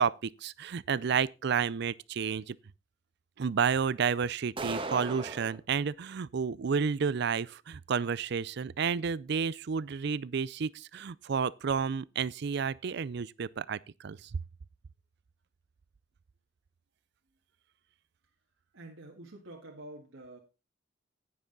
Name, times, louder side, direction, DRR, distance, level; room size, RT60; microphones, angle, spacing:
voice 1, 0.0-2.6 3.4-14.3, right 6 dB, 55° right, 0.4 m, -31 dB
sound 1, 4.6-5.6, right 2 dB, 25° right, 1.2 m, -36 dB
voice 2, 18.7-20.4, right 2 dB, 75° right, 1.7 m, -47 dB
9.9 x 9.7 x 3.9 m
head